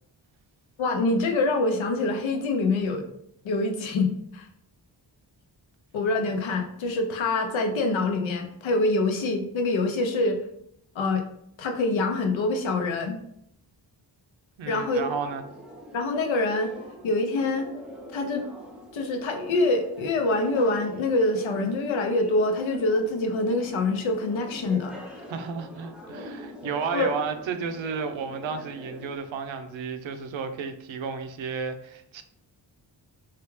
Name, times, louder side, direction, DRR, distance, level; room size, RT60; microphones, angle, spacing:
voice 1, 0.8-3.1 3.4-4.5 5.9-10.4 10.9-11.2 11.6-13.2 14.7-15.1 15.9-16.7 17.0-17.7 18.1-18.5 18.9-25.2 26.9-27.1, left 2 dB, 85° left, 5 dB, 0.6 m, -25 dB
voice 2, 14.6-15.5 25.3-32.2, right 5 dB, 85° right, 8 dB, 0.5 m, -32 dB
sound 1, 14.7-29.2, equal, ahead, 0.6 m, -44 dB
3.3 x 2.4 x 3.0 m, 0.72 s
cardioid pair, 70°, 46 cm